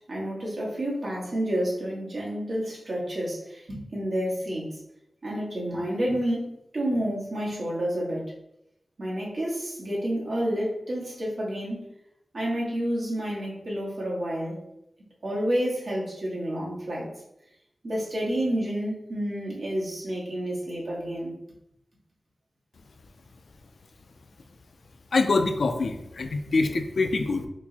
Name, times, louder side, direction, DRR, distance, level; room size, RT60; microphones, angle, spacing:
voice 1, 0.1-4.8 5.2-8.3 9.0-11.8 12.3-14.6 15.2-17.1 17.8-21.3, equal, 60° right, -5 dB, 1.2 m, -29 dB
voice 2, 25.1-27.5, left 3 dB, 70° left, 7 dB, 0.3 m, -25 dB
4.4 x 2.0 x 2.7 m, 0.82 s
wide cardioid pair, 80°, 0 cm